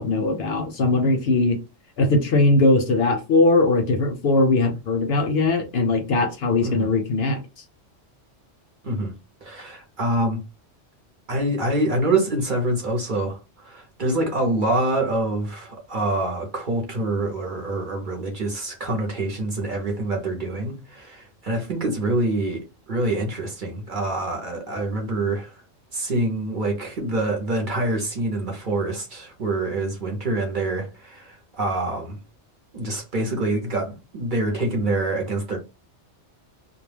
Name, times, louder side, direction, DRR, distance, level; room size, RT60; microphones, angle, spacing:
voice 1, 0.0-1.6 2.0-7.4, left 2 dB, 65° left, 0.7 m, -20 dB
voice 2, 9.4-10.4 11.3-22.6 22.9-25.6 25.9-32.2 32.7-35.6, right 2 dB, 50° right, 0.8 m, -26 dB
2.2 x 2.1 x 3.2 m
omnidirectional pair, 1.3 m